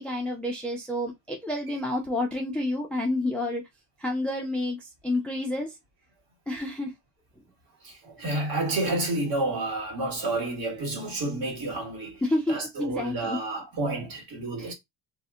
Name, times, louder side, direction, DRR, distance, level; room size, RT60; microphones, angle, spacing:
voice 1, 0.0-3.6 4.0-4.8 5.0-5.7 6.5-6.9 12.2-13.4 14.6-14.7, left 1 dB, 5° left, 0.3 m, -29 dB
voice 2, 7.8-12.2 12.5-14.7, right 2 dB, 55° right, 1.5 m, -30 dB
2.6 x 2.1 x 3.5 m
cardioid pair, 160°, 43 cm